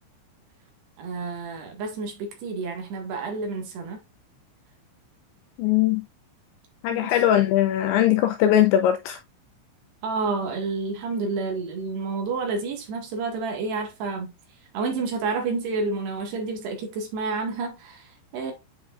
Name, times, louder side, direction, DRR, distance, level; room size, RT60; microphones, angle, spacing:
voice 1, 1.0-4.0 6.9-7.2 10.0-14.3 14.7-18.5, right 4 dB, 60° right, 3.5 m, -29 dB
voice 2, 5.6-6.0 6.8-9.2, left 11 dB, 85° left, 2.7 m, -20 dB
9.3 x 5.1 x 2.4 m
omnidirectional pair, 5.8 m